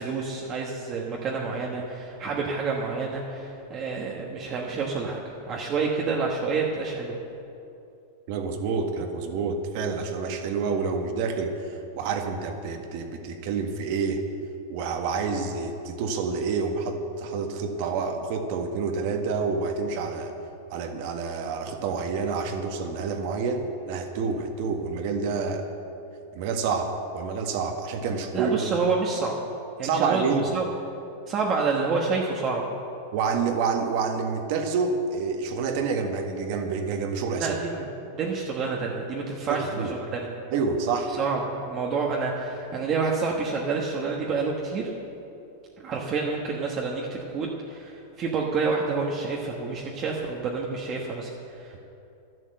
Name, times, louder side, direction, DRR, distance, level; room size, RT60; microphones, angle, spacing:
voice 1, 0.0-5.2 5.5-7.2 28.3-29.4 29.8-30.7 31.3-32.7 37.4-40.3 41.2-44.9 45.8-51.8, right 4 dB, 25° right, -1 dB, 1.3 m, -28 dB
voice 2, 8.3-14.2 14.7-20.3 20.7-25.6 26.3-28.7 29.8-30.5 33.1-37.6 39.5-39.9 40.5-41.1, right 5 dB, 50° right, 5 dB, 1.6 m, -28 dB
12.0 x 11.0 x 7.7 m, 2.7 s
supercardioid pair, 155°, 0 cm